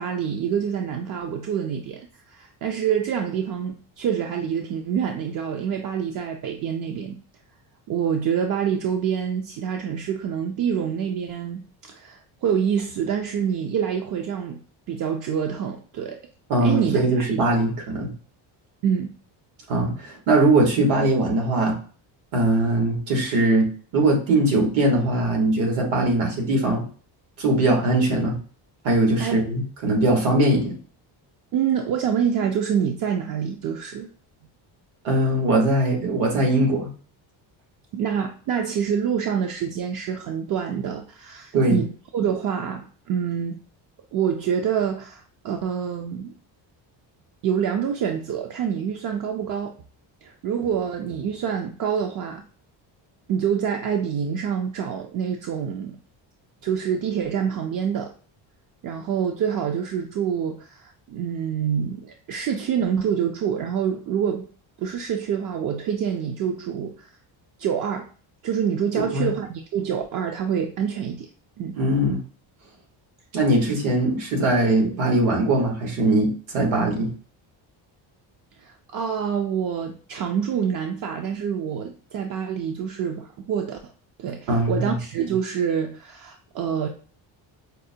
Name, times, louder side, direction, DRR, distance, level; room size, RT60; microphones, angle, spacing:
voice 1, 0.0-7.2 7.9-14.6 14.9-16.2 16.6-17.6 18.8-19.1 29.2-29.4 31.5-34.1 37.9-43.6 44.1-46.4 47.4-49.7 50.2-52.4 53.3-56.0 56.6-58.1 58.8-64.5 64.8-67.1 67.6-68.1 68.4-71.3 71.6-71.8 78.6-83.8 84.2-86.9, right 8 dB, 45° right, 0.4 m, -26 dB
voice 2, 16.5-18.1 19.7-21.8 22.3-26.8 27.4-28.4 28.8-30.7 35.0-36.9 41.5-41.8 68.9-69.3 71.7-72.2 73.3-77.1 84.5-85.0, right 2 dB, 80° right, 1.5 m, -21 dB
5.2 x 2.1 x 2.7 m
cardioid pair, 130°, 47 cm